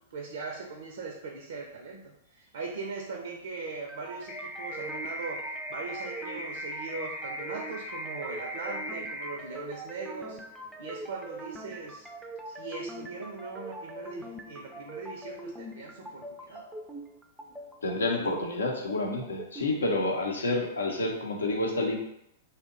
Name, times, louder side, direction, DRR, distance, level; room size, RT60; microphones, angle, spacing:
voice 1, 0.1-10.4 10.8-12.1 12.5-16.6, right 4 dB, 75° right, 1 dB, 0.5 m, -40 dB
sound 1, 3.7-19.7, right 2 dB, 10° right, 0.4 m, -43 dB
sound 2, 4.3-9.3, equal, 35° left, 0.8 m, -38 dB
voice 2, 17.8-21.9, left 2 dB, 85° left, 1 dB, 0.6 m, -29 dB
2.7 x 2.1 x 3.6 m, 0.79 s
hypercardioid pair, 110°, 0 cm